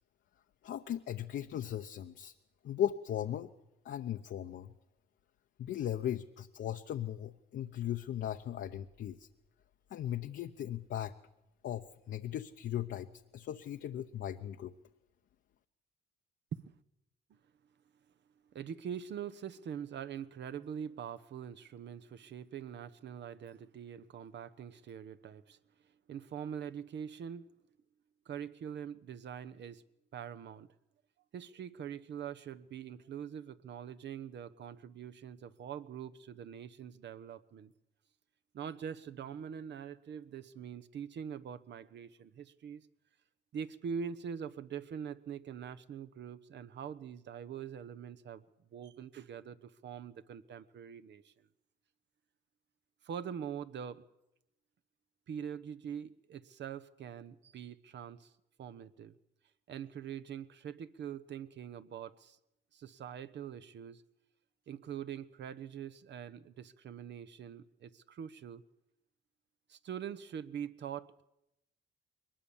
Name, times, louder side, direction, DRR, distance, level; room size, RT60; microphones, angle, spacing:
voice 1, 0.6-2.3 2.6-3.5 3.8-4.7 5.6-9.3 9.9-11.1 11.6-14.7, left 11 dB, 65° left, 5 dB, 0.9 m, -37 dB
voice 2, 18.5-25.6 26.1-27.4 28.3-29.8 30.1-30.7 31.3-37.7 38.5-42.8 43.5-48.4 48.7-51.2 53.1-54.0 55.3-58.2 58.6-59.1 59.7-62.3 62.8-64.0 64.7-68.6 69.7-71.3, right 8 dB, 65° right, 12 dB, 1.1 m, -43 dB
22.0 x 20.5 x 7.2 m, 0.88 s
cardioid pair, 90°, 20 cm